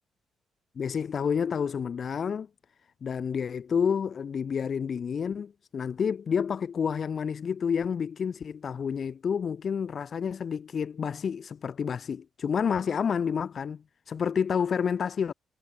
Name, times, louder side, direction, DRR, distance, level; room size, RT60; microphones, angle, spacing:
voice 1, 0.7-2.5 3.0-15.3, left 7 dB, 50° left, 1.7 m, -29 dB
cardioid pair, 90°, 0 cm